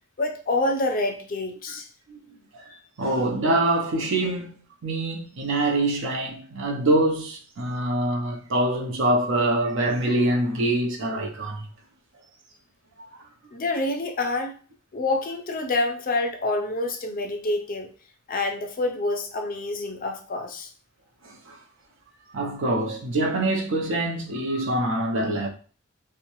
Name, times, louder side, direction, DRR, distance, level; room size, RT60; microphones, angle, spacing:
voice 1, 0.2-1.9 13.5-14.5 14.9-17.9 18.3-20.7, left 2 dB, 45° left, 0.4 m, -27 dB
voice 2, 2.5-11.7 21.2-21.6 22.3-25.5, right 1 dB, 65° right, 0.6 m, -25 dB
2.7 x 2.1 x 2.9 m
head